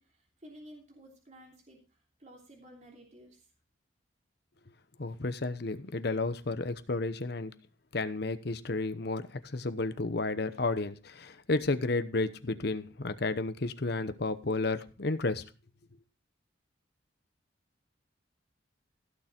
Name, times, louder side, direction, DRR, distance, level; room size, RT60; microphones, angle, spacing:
voice 1, 0.0-3.5, equal, 35° right, 3.2 m, -54 dB
voice 2, 5.0-7.5 7.9-15.4, left 3 dB, 55° left, 0.9 m, -32 dB
16.0 x 6.8 x 4.4 m
head